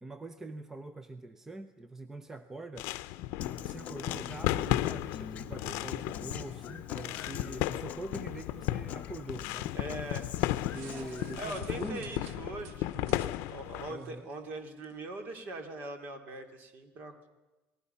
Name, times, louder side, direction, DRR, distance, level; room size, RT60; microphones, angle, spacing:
voice 1, 0.0-2.9 3.6-9.7 10.5-12.1 13.9-14.3, right 2 dB, 10° right, 11 dB, 0.6 m, -44 dB
sound 1, 2.8-13.9, left 15 dB, 70° left, 0.7 m, -35 dB
Human voice / Acoustic guitar, 3.4-11.4, left 8 dB, 35° left, 1.2 m, -46 dB
voice 2, 9.7-10.3 11.4-17.1, right 2 dB, 40° right, 7 dB, 2.7 m, -41 dB
sound 2, 9.7-15.0, right 7 dB, 90° right, 1.6 m, -53 dB
28.0 x 19.5 x 5.7 m, 1.1 s
cardioid pair, 170°, 5 cm